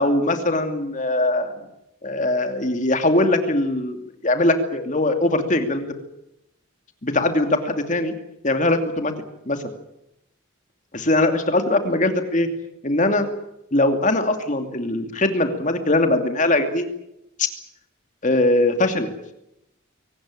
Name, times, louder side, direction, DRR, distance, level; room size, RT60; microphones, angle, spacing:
voice 1, 0.0-1.5 2.0-4.0 4.2-5.9 7.0-8.1 8.4-9.1 9.5-9.6 11.1-12.5 12.8-13.3 13.7-16.9 18.2-19.1, left 2 dB, 35° left, 7 dB, 2.6 m, -21 dB
23.0 x 18.5 x 8.9 m, 0.83 s
head